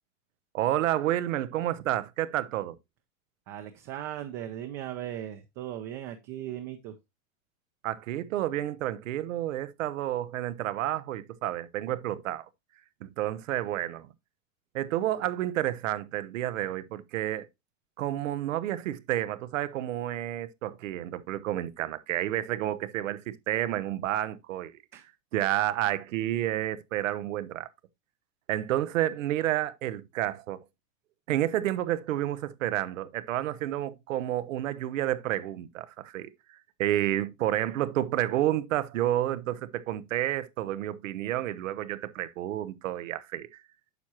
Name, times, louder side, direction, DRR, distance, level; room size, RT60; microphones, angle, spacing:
voice 1, 0.5-2.8 7.8-12.5 13.0-14.1 14.7-17.5 18.0-25.0 25.3-27.7 28.5-30.6 31.3-43.6, right 13 dB, 80° right, 0.9 m, -30 dB
voice 2, 3.5-6.9 24.9-25.0, right 11 dB, 30° right, 0.6 m, -38 dB
9.5 x 5.9 x 2.9 m
supercardioid pair, 160°, 38 cm